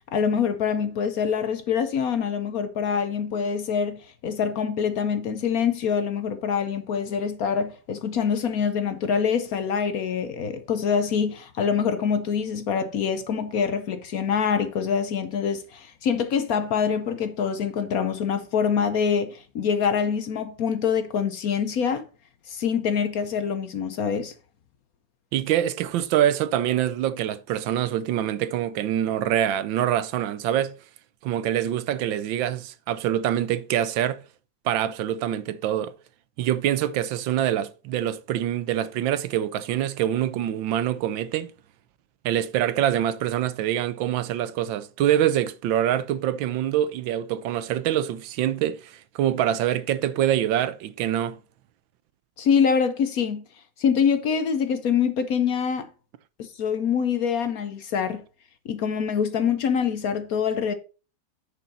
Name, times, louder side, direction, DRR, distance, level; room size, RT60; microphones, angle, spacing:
voice 1, 0.1-22.0 22.5-24.3 52.4-53.4 53.8-55.9 56.4-58.2 58.6-60.7, left 7 dB, 60° left, 1.1 m, -25 dB
voice 2, 25.3-30.7 31.2-34.2 34.6-35.9 36.4-41.5 42.2-51.4, right 11 dB, 85° right, 1.5 m, -25 dB
10.5 x 5.4 x 4.1 m
omnidirectional pair, 2.0 m